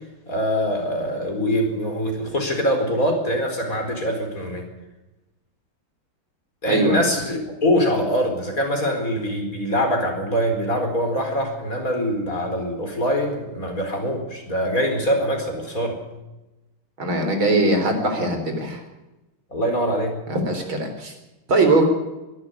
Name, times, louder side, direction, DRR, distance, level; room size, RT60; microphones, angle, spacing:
voice 1, 0.3-4.7 6.6-16.0 19.5-20.2, equal, 40° left, 3 dB, 5.0 m, -23 dB
voice 2, 6.7-7.0 17.0-18.8 20.3-21.1 21.5-21.9, right 2 dB, 75° right, 5 dB, 4.9 m, -20 dB
22.5 x 12.5 x 9.7 m, 1.0 s
omnidirectional pair, 2.3 m